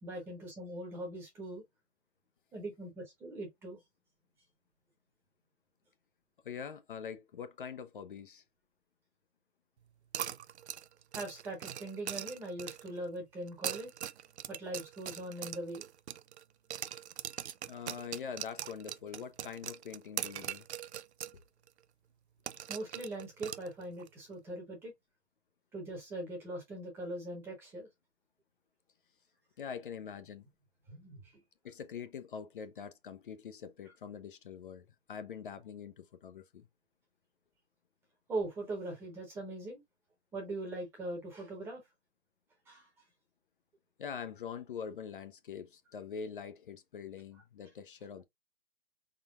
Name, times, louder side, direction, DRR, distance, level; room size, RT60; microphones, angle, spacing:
voice 1, 0.0-1.6 2.5-3.8 11.1-13.9 14.5-15.8 17.3-17.4 22.7-24.9 25.7-27.9 30.9-31.4 38.3-39.8 40.3-41.8 42.7-42.9, right 2 dB, 5° right, 0.9 m, -41 dB
voice 2, 6.4-8.4 17.7-20.7 29.6-30.5 31.6-36.7 44.0-48.2, left 7 dB, 50° left, 0.6 m, -44 dB
sound 1, 10.1-13.0 13.5-16.4 16.7-21.4 21.7-21.8 22.5-24.1, right 10 dB, 75° right, 0.5 m, -41 dB
4.4 x 3.8 x 2.3 m
hypercardioid pair, 165°, 33 cm